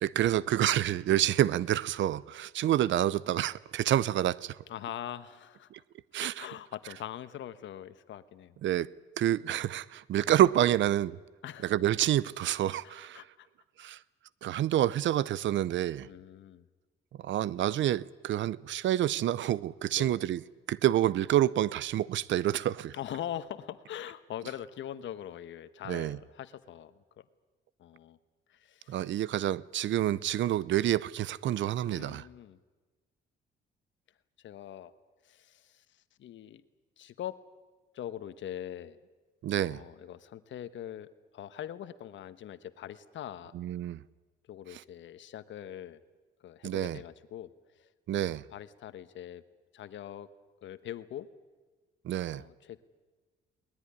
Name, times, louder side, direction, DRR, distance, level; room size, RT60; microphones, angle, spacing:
voice 1, 0.0-4.6 5.7-5.8 6.1-6.5 8.6-8.9 9.2-11.2 11.6-13.2 13.8-14.0 14.4-16.1 17.2-20.4 20.7-22.9 25.9-26.2 28.9-32.2 39.4-39.8 43.5-44.0 46.6-47.0 48.1-48.4 52.0-52.4, right 12 dB, 70° right, 0.7 m, -28 dB
voice 2, 4.7-5.7 6.2-8.6 11.4-11.7 12.8-13.5 16.0-16.7 19.9-20.2 22.9-27.2 27.8-28.2 28.5-29.2 31.8-32.6 34.4-34.9 35.2-35.8 36.2-36.6 37.0-37.4 37.9-39.0 39.6-43.5 44.5-46.0 46.4-47.5 47.8-47.9 48.5-49.4 49.7-50.3 50.6-51.3 52.3-52.8, left 11 dB, 70° left, 1.2 m, -42 dB
21.5 x 19.5 x 9.9 m
cardioid pair, 90°, 20 cm